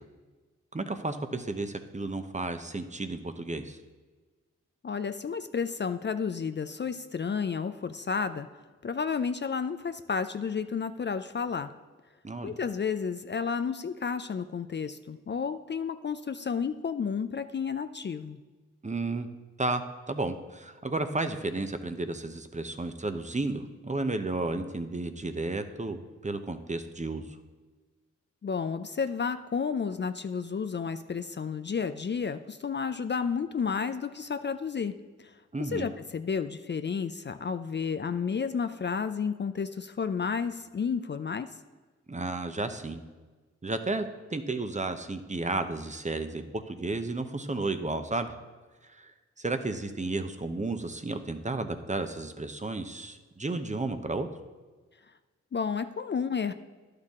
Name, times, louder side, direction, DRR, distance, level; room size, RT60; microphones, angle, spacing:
voice 1, 0.7-3.8 12.2-12.6 18.8-19.3 19.6-27.3 35.5-35.9 42.1-43.0 43.6-48.3 48.8-49.1 49.4-54.3, right 2 dB, 25° right, 8 dB, 0.8 m, -33 dB
voice 2, 4.8-8.5 8.8-11.7 12.4-18.4 28.4-35.0 35.2-35.3 35.6-41.5 55.5-56.5, left 6 dB, 40° left, 10 dB, 0.4 m, -31 dB
11.0 x 6.6 x 3.7 m, 1.3 s
cardioid pair, 40°, 29 cm